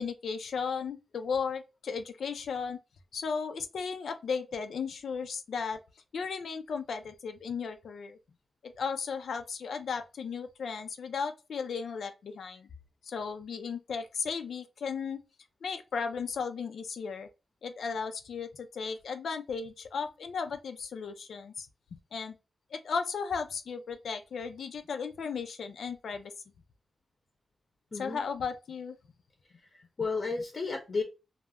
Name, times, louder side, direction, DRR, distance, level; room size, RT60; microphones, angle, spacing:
voice 1, 0.0-2.8 3.1-5.8 6.1-8.2 8.6-12.7 13.0-15.2 15.6-17.3 17.6-21.7 22.1-22.4 22.7-26.3 27.9-29.0, left 5 dB, 80° left, 0.3 m, -35 dB
voice 2, 27.9-28.2 29.7-31.0, left 4 dB, 40° left, 0.6 m, -33 dB
2.2 x 2.0 x 3.4 m
wide cardioid pair, 105°, 0 cm